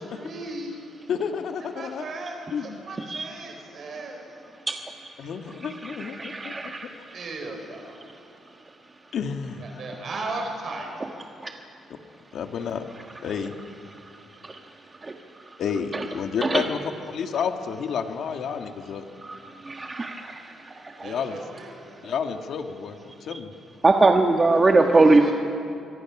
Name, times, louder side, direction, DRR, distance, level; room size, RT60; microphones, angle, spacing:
voice 1, 0.1-0.7 1.7-4.2 7.1-8.0 9.6-11.0 21.0-21.8 24.8-25.3, right 2 dB, 55° right, 2 dB, 4.7 m, -36 dB
voice 2, 1.1-2.1 2.5-2.9 5.2-6.7 9.1-9.8 12.3-12.8 13.2-13.6 15.6-16.8 17.1-19.1 21.0-21.4 22.0-23.5, left 6 dB, 65° left, 5 dB, 2.0 m, -30 dB
voice 3, 4.7-5.3 5.6-7.2 11.0-11.1 11.4-11.5 13.9-15.6 15.9-16.0 16.4-16.6 19.2-21.1 21.9-22.1 23.8-25.3, right 3 dB, 25° right, 3 dB, 1.5 m, -23 dB
27.5 x 23.5 x 6.2 m, 2.6 s
cardioid pair, 85°, 0 cm